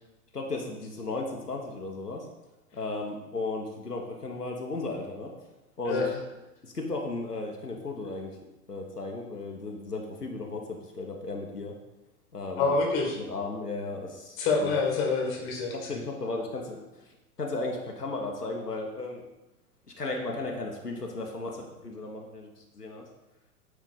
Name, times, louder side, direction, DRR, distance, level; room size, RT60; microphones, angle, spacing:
voice 1, 0.3-2.3 2.7-5.3 5.8-6.1 6.6-8.4 8.7-11.7 12.3-12.7 13.3-14.7 15.7-16.8 17.4-19.2 20.0-23.1, left 2 dB, 85° left, 1 dB, 1.1 m, -35 dB
voice 2, 5.9-6.2 12.6-13.2 14.4-16.0, left 4 dB, 25° left, 0 dB, 1.6 m, -27 dB
9.1 x 3.7 x 3.8 m, 0.99 s
figure-of-eight pair, 110°, 46 cm